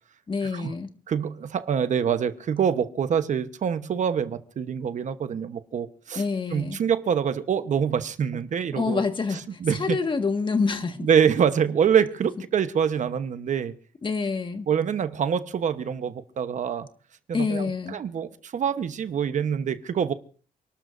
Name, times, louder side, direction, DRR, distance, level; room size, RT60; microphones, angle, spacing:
voice 1, 0.3-0.9 6.2-6.8 8.7-11.1 14.0-14.7 17.3-18.0, left 4 dB, 35° left, 1.7 m, -27 dB
voice 2, 1.1-6.2 6.5-9.0 9.6-10.0 11.0-13.7 14.7-16.9 17.4-20.1, right 7 dB, 60° right, 1.1 m, -25 dB
29.5 x 12.5 x 2.6 m
cardioid pair, 110°, 14 cm